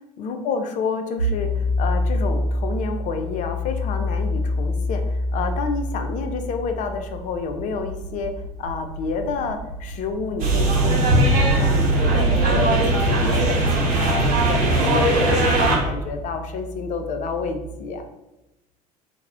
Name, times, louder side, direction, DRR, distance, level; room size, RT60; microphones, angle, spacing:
voice 1, 0.2-13.7 14.0-18.0, left 4 dB, 40° left, 6 dB, 0.4 m, -29 dB
sound 1, 1.2-17.6, left 1 dB, 80° left, 0.7 m, -29 dB
sound 2, 10.4-15.8, right 2 dB, 45° right, 0.9 m, -19 dB
2.3 x 2.1 x 3.4 m, 0.96 s
figure-of-eight pair, 65°, 19 cm